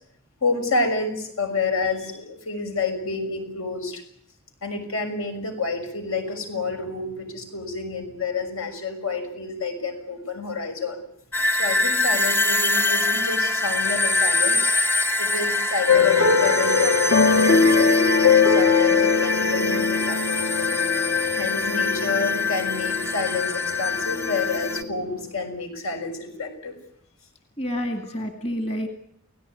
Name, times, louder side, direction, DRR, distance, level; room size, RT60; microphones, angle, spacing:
voice 1, 0.4-4.0 4.6-11.0 11.5-14.6 15.2-20.8 21.4-26.8, left 3 dB, 80° left, 6 dB, 6.3 m, -29 dB
sound 1, 11.3-24.8, left 2 dB, 10° left, 1.0 m, -24 dB
sound 2, 15.9-25.1, left 5 dB, 60° left, 1.7 m, -21 dB
voice 2, 27.6-28.9, equal, 30° left, 5 dB, 2.2 m, -28 dB
30.0 x 17.5 x 9.7 m, 0.72 s
head